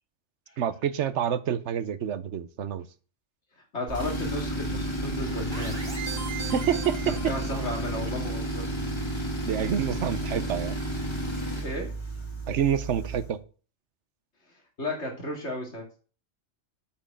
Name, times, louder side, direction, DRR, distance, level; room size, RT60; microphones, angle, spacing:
voice 1, 0.6-2.9 6.5-7.3 9.5-10.8 12.5-13.4, right 9 dB, 75° right, 1.1 m, -28 dB
voice 2, 3.7-5.9 7.0-8.7 11.6-11.9 14.8-15.8, left 1 dB, 70° left, 2.9 m, -34 dB
Tools, 3.9-13.4, right 1 dB, 25° left, 1.6 m, -32 dB
sound 1, 5.5-7.9, right 6 dB, 50° right, 2.4 m, -39 dB
8.8 x 4.5 x 7.4 m
omnidirectional pair, 1.2 m